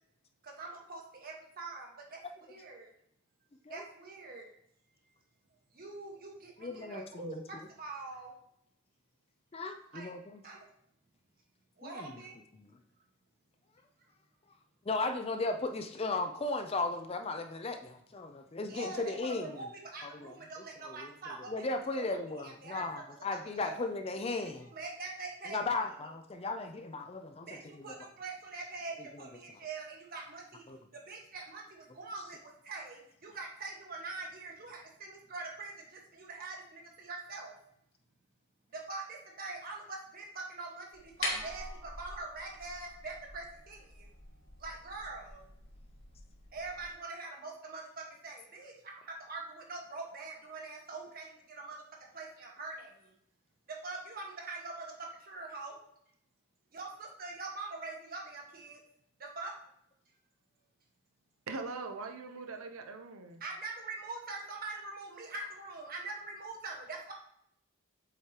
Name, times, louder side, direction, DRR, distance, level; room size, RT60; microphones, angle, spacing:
voice 1, 0.4-2.2 2.5-2.9 3.7-4.5 5.7-8.3 9.9-10.1 10.4-10.6 11.8-12.3 18.7-21.6 22.0-22.2 22.4-23.2 23.6-23.9 24.4-25.6 27.5-30.6 31.1-32.4 32.6-37.5 38.7-44.0 44.6-45.5 46.5-51.8 52.1-53.1 53.8-54.9 55.3-55.8 56.7-58.8 59.2-59.5 63.4-67.1, right 3 dB, 40° right, -1 dB, 1.4 m, -44 dB
voice 2, 6.6-7.4 9.5-10.4 11.8-12.2 12.6-12.7 14.9-19.6 20.0-20.4 20.8-24.7 25.5-27.9 30.7-30.8, left 3 dB, 25° left, 6 dB, 0.4 m, -36 dB
sound 1, 40.9-46.9, left 2 dB, 65° left, 1.5 m, -44 dB
voice 3, 61.5-63.4, right 3 dB, 75° right, 5 dB, 0.7 m, -41 dB
8.0 x 4.7 x 2.9 m, 0.72 s
head